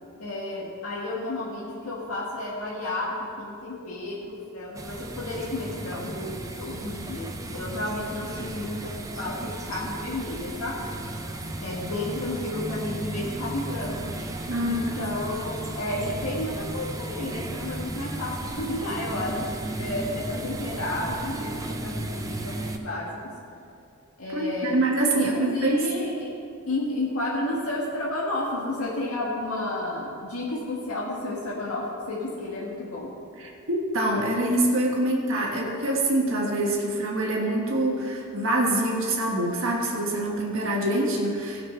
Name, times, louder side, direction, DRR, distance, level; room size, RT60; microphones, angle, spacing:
voice 1, 0.2-11.3 11.6-14.1 14.6-23.3 24.2-24.8 25.1-26.4 26.7-33.1, left 1 dB, 75° left, -5 dB, 1.8 m, -32 dB
sound 1, 4.7-22.8, right 1 dB, 15° right, 0.7 m, -35 dB
voice 2, 14.5-14.8 24.3-25.8 33.4-41.6, right 1 dB, 60° right, -2 dB, 1.5 m, -25 dB
16.5 x 5.9 x 5.8 m, 2.5 s
head